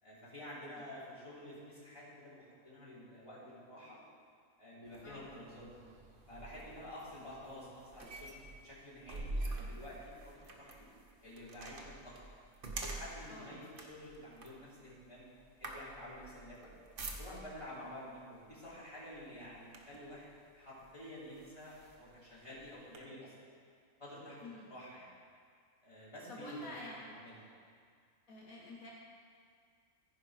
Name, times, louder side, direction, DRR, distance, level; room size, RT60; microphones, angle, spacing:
voice 1, 0.0-4.0 4.6-5.8 6.3-10.7 11.2-12.1 12.6-16.7 17.2-20.3 20.5-23.3 24.0-24.4 24.7-25.1 25.8-26.7 27.1-27.4, left 1 dB, 20° left, -10 dB, 3.2 m, -50 dB
sound 1, 4.8-17.7 18.5-18.7 19.1-20.1 20.8-20.9 21.3-23.0, right 2 dB, 45° right, 1.0 m, -46 dB
voice 2, 13.3-13.6 24.4-24.7 26.3-27.2 28.3-28.9, left 1 dB, 80° left, -4 dB, 1.7 m, -48 dB
14.5 x 5.2 x 4.8 m, 2.1 s
omnidirectional pair, 1.5 m